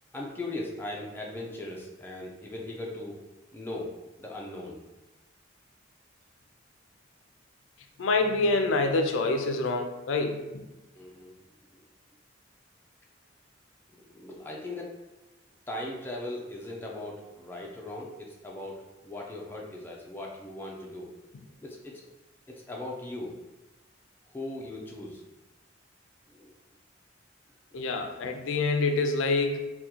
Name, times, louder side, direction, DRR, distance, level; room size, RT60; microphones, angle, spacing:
voice 1, 0.1-3.2 3.5-3.9 4.2-4.8 10.9-11.3 14.1-14.9 15.7-21.1 21.6-22.1 22.5-23.3 24.3-25.2 26.3-26.5 28.0-28.1, left 1 dB, 10° left, -2 dB, 0.4 m, -38 dB
voice 2, 8.0-10.6 27.7-29.6, left 3 dB, 85° left, 5 dB, 0.4 m, -26 dB
3.6 x 2.3 x 2.9 m, 1.0 s
head